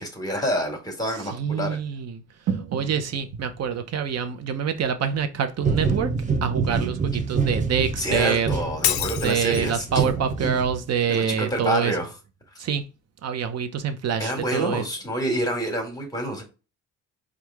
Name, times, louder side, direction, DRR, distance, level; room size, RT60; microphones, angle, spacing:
voice 1, 0.0-1.8 8.0-9.8 11.1-12.1 14.2-16.4, equal, 10° left, 1.5 m, -27 dB
voice 2, 1.2-2.2 2.5-6.1 6.4-8.5 9.2-11.9 12.6-12.8 13.2-14.8, right 7 dB, 55° right, 0.8 m, -26 dB
sound 1, 5.6-11.1, right 4 dB, 25° right, 0.7 m, -27 dB
Shatter, 8.8-9.8, left 12 dB, 75° left, 0.4 m, -27 dB
4.6 x 2.5 x 3.4 m
cardioid pair, 90°, 30 cm